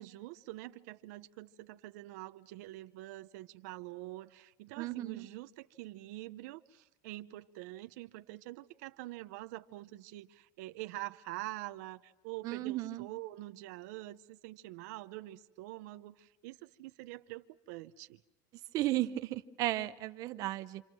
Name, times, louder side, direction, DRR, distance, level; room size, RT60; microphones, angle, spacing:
voice 1, 0.0-18.2, right 17 dB, 75° right, 0.8 m, -46 dB
voice 2, 4.8-5.3 12.4-13.1 18.7-20.8, right 15 dB, 40° right, 0.8 m, -34 dB
29.5 x 26.5 x 6.2 m
cardioid pair, 165°, 9 cm